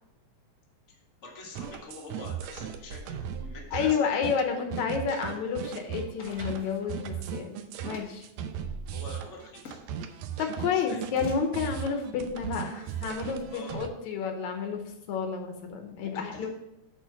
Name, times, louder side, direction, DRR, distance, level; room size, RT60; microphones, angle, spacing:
voice 1, 0.9-4.6 8.9-9.8 10.7-11.0 13.5-13.8 16.0-16.5, left 3 dB, 35° left, -1 dB, 1.2 m, -45 dB
sound 1, 1.5-13.9, right 8 dB, 80° right, 1.7 m, -37 dB
voice 2, 3.7-8.3 10.4-14.8 15.1-16.5, left 6 dB, 75° left, 4 dB, 2.2 m, -30 dB
sound 2, 5.3-13.4, left 3 dB, 60° left, 0.8 m, -51 dB
8.5 x 4.3 x 5.7 m, 0.84 s
omnidirectional pair, 3.5 m